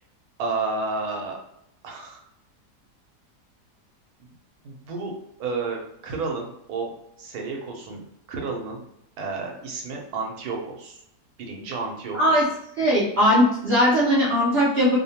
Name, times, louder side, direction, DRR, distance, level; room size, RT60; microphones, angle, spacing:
voice 1, 0.4-1.4 1.8-2.2 4.6-5.1 5.4-6.9 7.2-8.0 8.3-8.8 9.2-11.0 11.4-12.3, right 4 dB, 75° right, 1 dB, 1.1 m, -31 dB
voice 2, 12.1-12.4 12.8-15.0, equal, 55° right, -6 dB, 0.7 m, -19 dB
2.7 x 2.1 x 2.8 m, 0.77 s
omnidirectional pair, 1.7 m